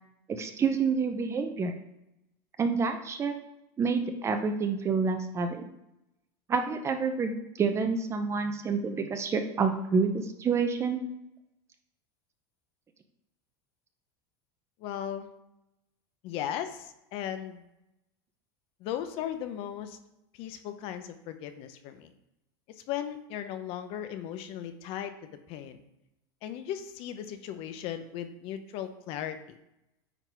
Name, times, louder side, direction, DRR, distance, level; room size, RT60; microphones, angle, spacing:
voice 1, 0.3-1.7 2.6-3.3 3.8-5.6 6.5-11.0, right 5 dB, 20° right, 7 dB, 0.7 m, -28 dB
voice 2, 14.8-15.3 16.2-17.6 18.8-20.0 20.3-22.1 22.7-25.1 25.5-25.8 26.4-29.6, left 10 dB, 50° left, 9 dB, 0.8 m, -37 dB
9.2 x 3.9 x 4.6 m, 0.87 s
supercardioid pair, 140°, 12 cm